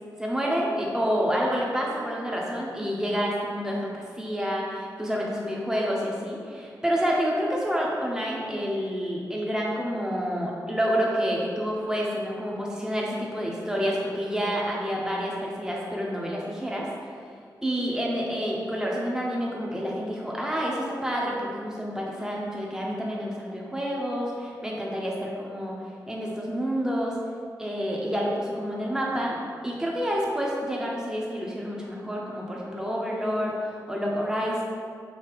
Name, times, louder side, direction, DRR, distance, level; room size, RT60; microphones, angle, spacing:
voice 1, 0.2-16.9 17.6-25.8 26.1-27.1 27.6-29.4 29.6-34.6, equal, 10° right, -4 dB, 1.0 m, -28 dB
5.4 x 2.9 x 3.3 m, 2.2 s
cardioid pair, 60°, 7 cm